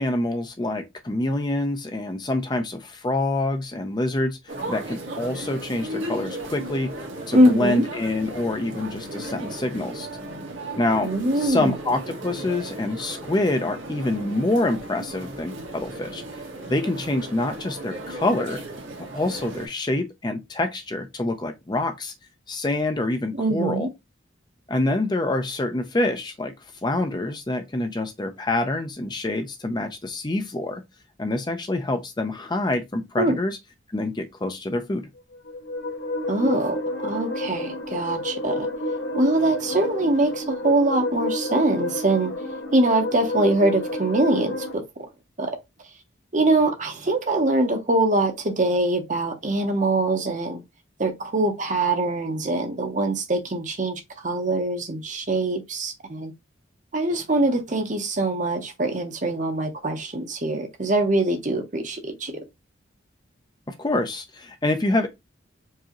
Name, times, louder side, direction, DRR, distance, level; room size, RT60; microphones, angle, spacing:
voice 1, 0.0-6.9 7.3-10.1 10.8-11.1 11.4-16.2 16.7-18.6 19.1-22.1 22.5-23.9 24.7-26.5 26.8-30.8 31.2-33.6 33.9-35.1 63.8-65.1, left 2 dB, 20° left, 0.5 m, -26 dB
sound 1, 4.5-19.7, right 1 dB, 75° right, 1.3 m, -36 dB
voice 2, 7.3-7.8 11.0-11.8 23.3-23.9 33.2-33.4 36.3-38.7 39.1-42.3 42.7-44.8 45.4-45.6 46.3-50.6 51.0-56.3 56.9-62.3, right 2 dB, 40° right, 0.8 m, -23 dB
sound 2, 35.3-44.7, left 1 dB, 75° left, 1.2 m, -30 dB
4.7 x 2.7 x 3.0 m
head